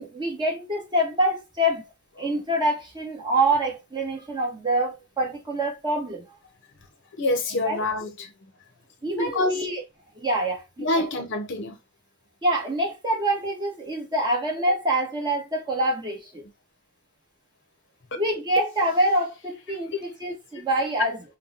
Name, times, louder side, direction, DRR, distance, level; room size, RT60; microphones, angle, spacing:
voice 1, 0.0-1.8 2.2-6.2 7.6-7.8 9.0-9.8 10.1-11.1 12.4-16.4 18.2-21.2, right 1 dB, 20° right, 1.3 m, -26 dB
voice 2, 7.2-8.3 9.1-9.6 10.8-11.8, left 2 dB, 60° left, 0.8 m, -26 dB
5.6 x 2.2 x 2.8 m
head